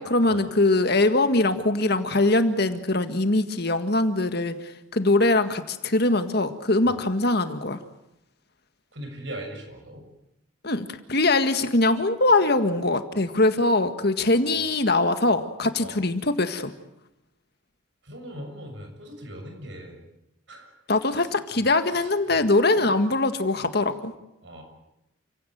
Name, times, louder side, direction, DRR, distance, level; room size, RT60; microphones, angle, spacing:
voice 1, 0.0-7.8 10.6-16.7 20.9-24.1, left 2 dB, 55° left, 8 dB, 1.8 m, -22 dB
voice 2, 8.9-10.1 14.2-14.7 15.8-16.0 18.0-20.1 20.5-20.7 21.1-21.3 21.9-22.4 22.8-23.0 24.4-24.6, right 1 dB, 65° right, 4 dB, 6.9 m, -40 dB
29.5 x 17.0 x 9.3 m, 0.86 s
head